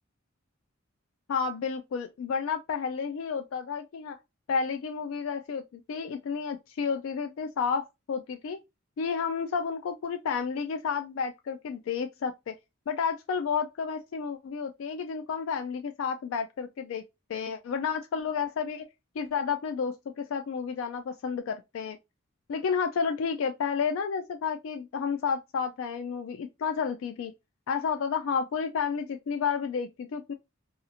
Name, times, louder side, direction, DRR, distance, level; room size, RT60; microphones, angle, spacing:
voice 1, 1.3-4.2 4.5-8.6 9.0-12.5 12.9-17.0 17.3-18.9 19.2-22.0 22.5-27.3 27.7-30.3, left 6 dB, 70° left, 0.3 m, -31 dB
2.8 x 2.4 x 2.4 m
head